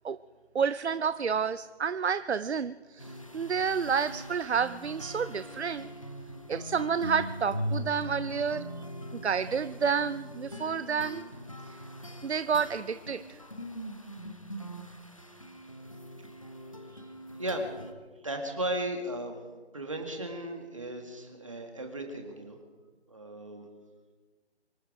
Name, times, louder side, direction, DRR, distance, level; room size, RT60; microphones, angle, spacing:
voice 1, 0.5-5.9 6.5-8.7 9.1-11.3 11.7-11.8 12.2-13.4, right 6 dB, 80° right, 14 dB, 0.6 m, -30 dB
sound 1, 3.0-17.9, equal, 30° left, 1.0 m, -41 dB
voice 2, 18.2-19.4 19.7-22.6 23.1-23.7, right 1 dB, 30° right, 3 dB, 2.1 m, -35 dB
25.0 x 11.0 x 5.0 m, 1.4 s
figure-of-eight pair, 180°, 33 cm